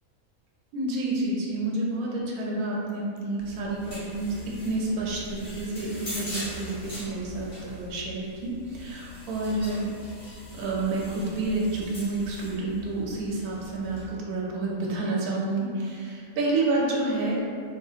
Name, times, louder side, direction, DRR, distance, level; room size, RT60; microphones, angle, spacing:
voice 1, 0.7-9.9 10.5-17.4, right 2 dB, 90° right, -3 dB, 1.1 m, -29 dB
sound 1, 3.4-14.1, equal, 35° left, 1.3 m, -41 dB
3.9 x 2.7 x 2.4 m, 2.3 s
omnidirectional pair, 1.6 m